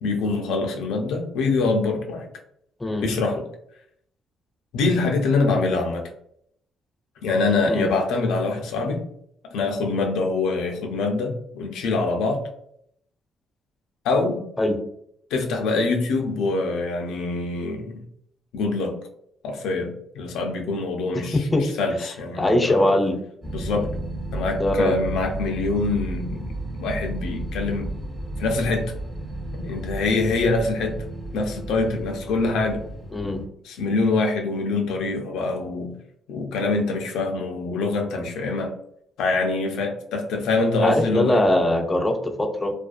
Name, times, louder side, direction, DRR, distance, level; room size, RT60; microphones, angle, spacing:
voice 1, 0.0-2.3 3.0-3.5 4.7-6.1 7.2-9.0 9.4-12.4 14.0-14.5 15.3-18.0 18.5-19.0 19.4-22.8 23.5-23.9 24.3-26.5 26.8-27.9 28.4-28.9 29.5-31.0 31.3-32.8 33.7-35.9 36.3-38.7 39.2-41.4, left 3 dB, 85° left, 3 dB, 0.4 m, -24 dB
voice 2, 21.1-21.6 22.4-23.2 24.6-25.0 33.1-33.4 40.8-42.7, left 1 dB, 20° left, 5 dB, 0.3 m, -21 dB
sound 1, 23.4-33.5, right 2 dB, 10° right, 0.9 m, -33 dB
2.4 x 2.2 x 2.3 m, 0.70 s
cardioid pair, 90°, 0 cm